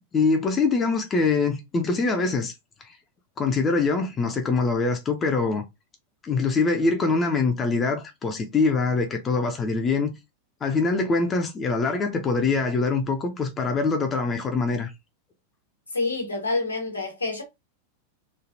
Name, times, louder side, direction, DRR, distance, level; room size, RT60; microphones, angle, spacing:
voice 1, 0.1-2.5 2.8-2.9 3.4-5.6 6.2-10.1 10.6-14.9, left 4 dB, 20° left, 0.5 m, -24 dB
voice 2, 15.9-17.4, left 3 dB, 80° left, 1.2 m, -27 dB
3.2 x 2.4 x 2.6 m
figure-of-eight pair, 90°, 0 cm